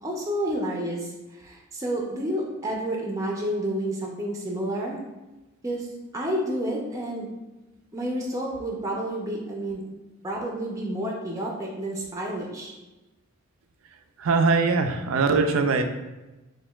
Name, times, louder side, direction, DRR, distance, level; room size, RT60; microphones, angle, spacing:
voice 1, 0.0-5.0 5.6-5.9 6.1-7.3 7.9-9.9 10.2-12.7, right 1 dB, 15° right, -2 dB, 0.5 m, -30 dB
voice 2, 14.2-15.8, right 4 dB, 75° right, 7 dB, 0.4 m, -21 dB
6.1 x 2.2 x 2.3 m, 1.1 s
head